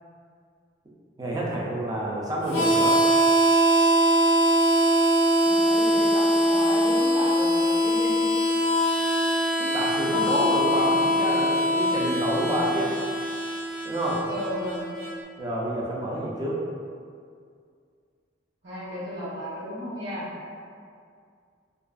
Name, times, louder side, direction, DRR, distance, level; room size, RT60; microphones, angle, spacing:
voice 1, 1.2-3.0 9.6-12.8 13.8-14.2 15.4-16.6, right 1 dB, 20° right, -5 dB, 0.3 m, -28 dB
Harmonica, 2.5-15.1, equal, 35° left, 0.6 m, -22 dB
voice 2, 5.4-8.2 12.6-12.7 14.3-14.9 18.6-20.3, equal, 60° right, -10 dB, 1.0 m, -34 dB
2.4 x 2.3 x 2.2 m, 2.2 s
head